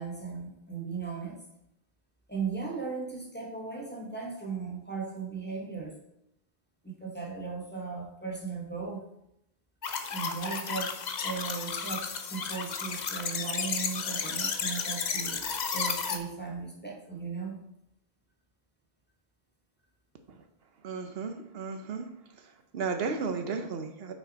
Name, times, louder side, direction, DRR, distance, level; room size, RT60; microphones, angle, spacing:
voice 1, 0.0-1.4 2.3-6.0 6.8-9.0 10.1-17.6, right 5 dB, 10° left, -2 dB, 1.2 m, -37 dB
sound 1, 9.8-16.2, left 6 dB, 50° left, 0.7 m, -33 dB
voice 2, 20.8-22.1 22.7-24.1, right 5 dB, 75° right, 7 dB, 0.9 m, -34 dB
5.9 x 5.7 x 4.1 m, 0.81 s
omnidirectional pair, 1.0 m